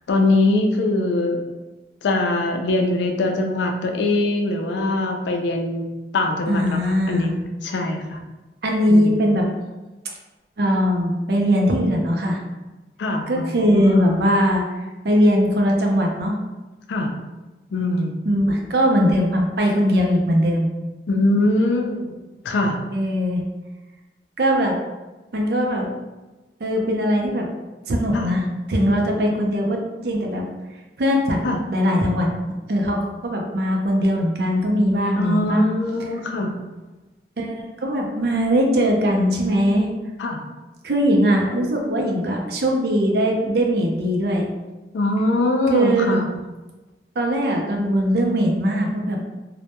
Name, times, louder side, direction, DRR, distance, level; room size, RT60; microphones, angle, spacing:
voice 1, 0.1-1.4 2.0-5.8 6.1-7.3 7.6-8.2 8.9-9.2 13.0-14.3 16.9-17.1 17.7-18.1 21.1-22.1 22.4-22.8 28.1-28.3 31.4-31.6 35.1-36.5 40.2-40.4 44.9-46.3, left 2 dB, 85° left, 3 dB, 0.4 m, -22 dB
voice 2, 6.5-7.3 8.6-9.5 10.6-12.4 13.2-14.7 15.0-16.3 18.2-20.7 22.9-23.4 24.4-24.8 25.3-25.9 26.6-27.5 27.9-30.4 31.0-31.4 31.7-32.3 32.7-33.0 33.2-35.6 37.4-39.9 40.8-44.5 45.7-46.2 47.2-49.2, equal, 65° right, 0 dB, 0.4 m, -20 dB
2.1 x 2.1 x 2.8 m, 1.1 s
head